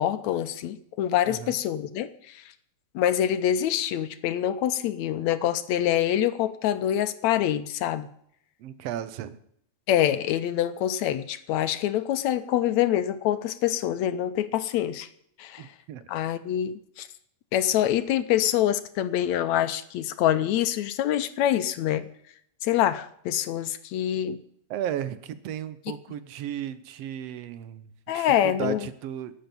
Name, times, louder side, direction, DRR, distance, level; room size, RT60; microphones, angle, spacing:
voice 1, 0.0-2.4 3.0-8.1 9.9-15.1 15.4-15.7 16.1-17.1 17.5-22.1 22.6-24.4 28.1-28.9, left 11 dB, 75° left, 12 dB, 2.1 m, -25 dB
voice 2, 1.3-1.6 8.6-9.4 15.6-16.0 24.7-29.3, right 10 dB, 70° right, 13 dB, 1.9 m, -35 dB
12.5 x 9.1 x 9.4 m, 0.68 s
omnidirectional pair, 3.3 m